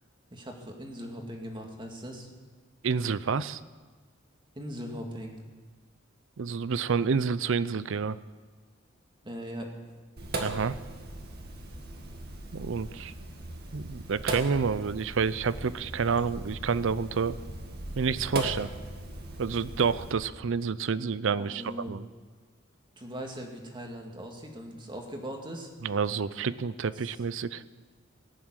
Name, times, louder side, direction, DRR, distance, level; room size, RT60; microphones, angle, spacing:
voice 1, 0.3-2.3 4.6-5.3 9.2-9.7 21.4-21.9 23.0-25.7 27.0-27.1, equal, 25° right, 2 dB, 2.1 m, -40 dB
voice 2, 2.8-3.6 6.4-8.2 10.4-10.8 12.5-13.1 13.7-17.4 17.9-18.7 19.4-22.1 25.8-27.6, right 5 dB, 65° right, 16 dB, 0.5 m, -29 dB
Sink (filling or washing), 10.2-20.1, right 2 dB, 50° right, 1.8 m, -38 dB
18.5 x 7.3 x 9.0 m, 1.5 s
head